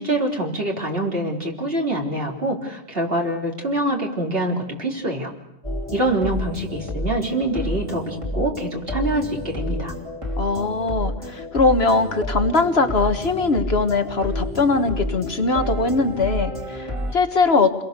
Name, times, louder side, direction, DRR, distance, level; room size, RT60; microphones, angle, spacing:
voice 1, 0.0-5.3 5.9-9.9, right 1 dB, 50° right, 1 dB, 3.7 m, -25 dB
sound 1, 5.6-17.1, left 1 dB, 25° right, 3.1 m, -30 dB
voice 2, 10.4-17.8, left 3 dB, 55° left, 7 dB, 1.6 m, -21 dB
29.0 x 22.0 x 6.7 m, 0.87 s
omnidirectional pair, 1.3 m